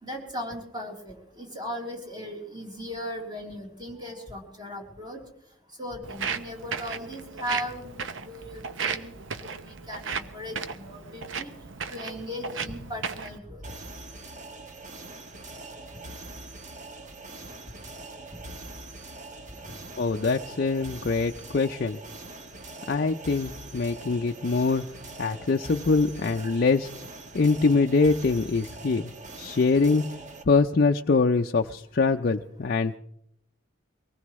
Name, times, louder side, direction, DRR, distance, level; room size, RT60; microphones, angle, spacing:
voice 1, 0.0-5.2 5.8-9.1 9.4-11.5 11.9-13.6 26.4-26.5, equal, 25° right, 0 dB, 3.5 m, -37 dB
Walk footsteps, 6.0-13.4, right 5 dB, 70° right, 0.9 m, -35 dB
sound 1, 13.6-30.4, right 2 dB, 40° right, 1.3 m, -43 dB
voice 2, 20.0-22.0 22.9-24.8 25.2-26.9 27.3-29.1 29.4-32.9, left 4 dB, 50° left, 4 dB, 0.5 m, -24 dB
23.5 x 19.0 x 3.1 m, 0.76 s
head